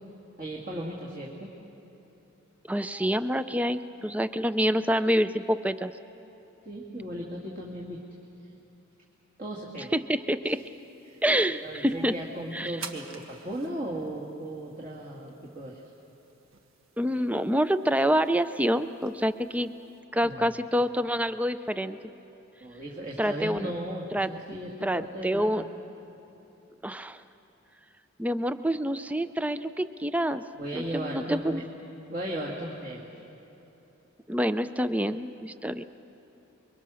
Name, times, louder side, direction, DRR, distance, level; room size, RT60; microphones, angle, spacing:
voice 1, 0.4-1.5 6.6-8.0 8.4-8.5 9.4-9.9 10.4-10.6 11.0-11.2 11.6-15.8 20.2-20.5 22.6-25.6 30.5-31.6 32.1-33.1, right 1 dB, 40° right, -3 dB, 2.0 m, -36 dB
voice 2, 2.7-5.9 9.9-10.6 11.2-12.1 12.5-12.7 17.0-19.7 20.1-22.0 23.2-23.7 24.1-24.3 24.8-25.6 26.8-27.2 28.2-30.4 30.7-31.6 34.3-35.8, equal, 5° right, 12 dB, 0.4 m, -27 dB
sound 1, 10.5-20.0, right 6 dB, 70° right, 1.3 m, -51 dB
28.5 x 22.5 x 6.3 m, 3.0 s
head